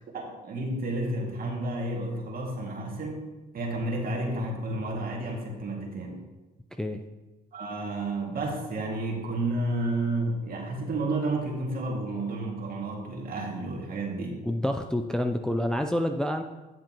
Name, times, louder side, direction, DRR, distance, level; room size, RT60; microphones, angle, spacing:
voice 1, 0.1-3.3 3.5-6.2 7.5-14.4, right 2 dB, 50° right, 0 dB, 2.1 m, -31 dB
voice 2, 14.4-16.4, left 1 dB, 5° left, 5 dB, 0.4 m, -28 dB
9.2 x 7.4 x 2.9 m, 1.1 s
supercardioid pair, 65°, 19 cm